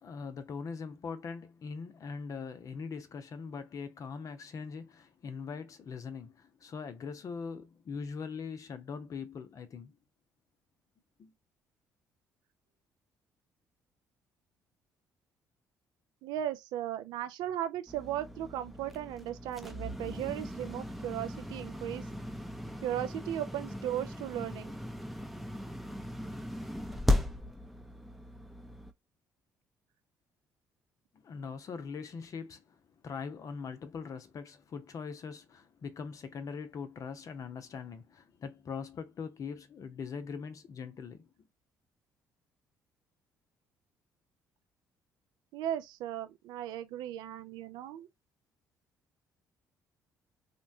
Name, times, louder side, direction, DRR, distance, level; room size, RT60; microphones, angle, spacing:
voice 1, 0.0-9.9 11.2-11.3 31.2-32.8 33.0-41.3, left 5 dB, 50° left, 0.6 m, -41 dB
voice 2, 16.2-22.1 22.8-24.7 45.5-48.1, right 11 dB, 75° right, 0.4 m, -36 dB
sound 1, 17.9-28.9, left 1 dB, ahead, 0.5 m, -37 dB
2.8 x 2.2 x 2.6 m
supercardioid pair, 65°, 7 cm